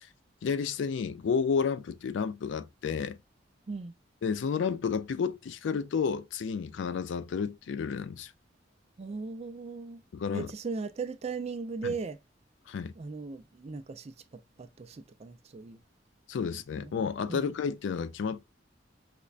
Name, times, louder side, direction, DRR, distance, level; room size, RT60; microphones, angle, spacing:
voice 1, 0.4-3.2 4.2-8.3 10.1-10.5 11.8-11.9 12.7-12.9 16.3-18.4, left 6 dB, 70° left, 0.3 m, -31 dB
voice 2, 9.0-10.0 10.3-12.2 13.0-14.1 14.6-15.8 16.4-17.0 17.3-17.5, right 4 dB, 35° right, 0.4 m, -38 dB
5.0 x 2.2 x 2.4 m
head